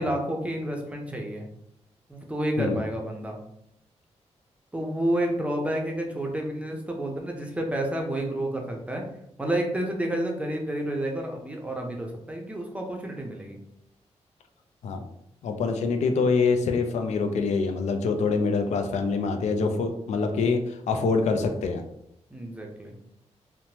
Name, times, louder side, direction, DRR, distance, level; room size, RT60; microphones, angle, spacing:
voice 1, 0.0-1.4 2.1-3.4 4.7-9.0 9.4-13.6 22.3-22.9, right 1 dB, 10° right, 1 dB, 0.5 m, -30 dB
voice 2, 15.4-21.9, left 4 dB, 80° left, 5 dB, 0.4 m, -25 dB
3.0 x 2.1 x 2.8 m, 0.78 s
wide cardioid pair, 125°, 12 cm